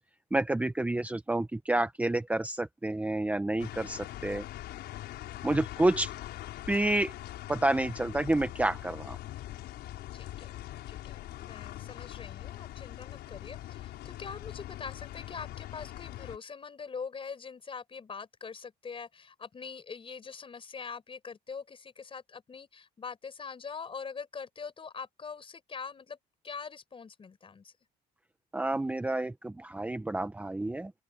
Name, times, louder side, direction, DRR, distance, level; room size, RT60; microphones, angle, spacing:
voice 1, 0.3-4.4 5.4-6.1 6.7-7.1 7.5-9.2 28.5-30.9, right 2 dB, 10° right, 0.9 m, -29 dB
sound 1, 3.6-16.4, left 14 dB, 75° left, 5.4 m, -42 dB
voice 2, 10.1-26.2 26.4-27.7, left 5 dB, 30° left, 5.4 m, -43 dB
open air
cardioid pair, 110°, 17 cm